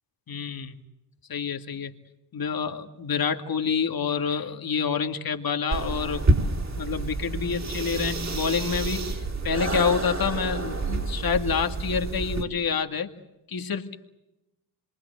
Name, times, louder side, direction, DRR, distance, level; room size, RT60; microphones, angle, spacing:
voice 1, 0.3-0.8 1.3-1.9 2.3-6.2 6.8-13.1 13.5-14.0, left 6 dB, 55° left, 6 dB, 2.4 m, -28 dB
sound 1, 5.7-12.4, right 2 dB, 40° right, 4.7 m, -28 dB
27.0 x 23.5 x 8.2 m, 0.95 s
cardioid pair, 60°, 42 cm